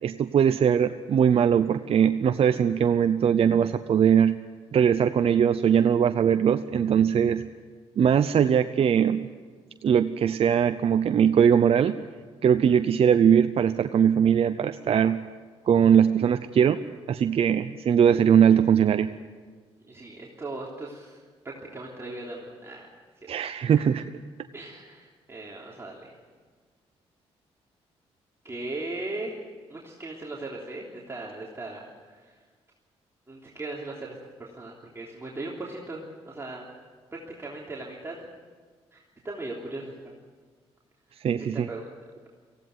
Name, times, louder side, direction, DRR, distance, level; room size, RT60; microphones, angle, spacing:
voice 1, 0.0-4.3 4.7-7.5 8.0-9.3 9.8-12.0 12.4-15.2 15.7-16.8 17.1-19.1 23.3-24.0 41.2-41.7, right 8 dB, 60° right, 10 dB, 0.7 m, -21 dB
voice 2, 19.9-21.2 21.4-22.9 23.8-23.9 24.5-26.1 28.4-29.4 29.7-32.4 33.3-36.6 37.1-38.1 38.9-39.0 39.2-40.1 41.4-41.9, right 2 dB, 25° right, -3 dB, 3.3 m, -38 dB
18.5 x 16.0 x 9.5 m, 1.5 s
cardioid pair, 70°, 11 cm